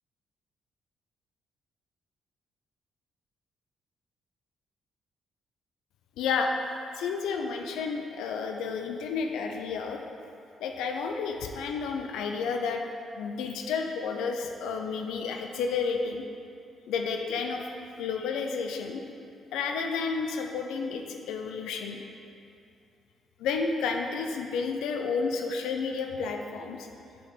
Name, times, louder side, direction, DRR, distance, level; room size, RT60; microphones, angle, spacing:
voice 1, 6.2-6.5 7.0-10.0 10.6-12.8 13.2-16.2 16.9-17.7 18.0-19.0 19.5-22.0 23.4-26.9, left 5 dB, 85° left, 3 dB, 0.4 m, -31 dB
7.4 x 3.4 x 4.0 m, 2.6 s
cardioid pair, 70°, 0 cm